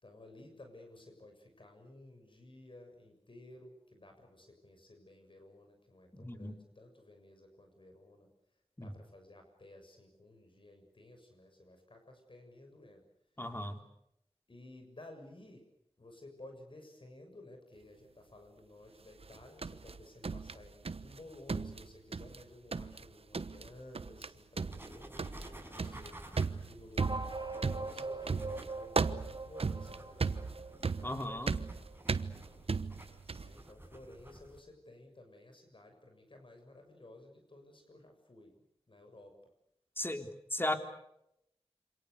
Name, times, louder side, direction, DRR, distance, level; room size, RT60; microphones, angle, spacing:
voice 1, 0.0-8.3 8.8-13.0 14.5-15.7 16.0-26.1 26.6-30.7 33.3-38.5 38.9-39.4, left 1 dB, 55° left, 5 dB, 7.0 m, -55 dB
voice 2, 6.1-6.6 8.8-8.9 13.4-13.8 31.0-31.5 40.0-40.8, left 1 dB, 20° left, 6 dB, 3.6 m, -36 dB
sound 1, 19.2-21.2 21.5-22.4 22.7-23.1 23.3-23.7 23.9-24.3 24.6-33.6, right 4 dB, 70° right, 1.2 m, -36 dB
sound 2, 24.7-34.6, right 1 dB, 20° right, 6.1 m, -53 dB
sound 3, 27.0-31.9, right 2 dB, 45° right, 7.4 m, -42 dB
28.0 x 26.5 x 6.8 m, 0.80 s
wide cardioid pair, 55°, 10 cm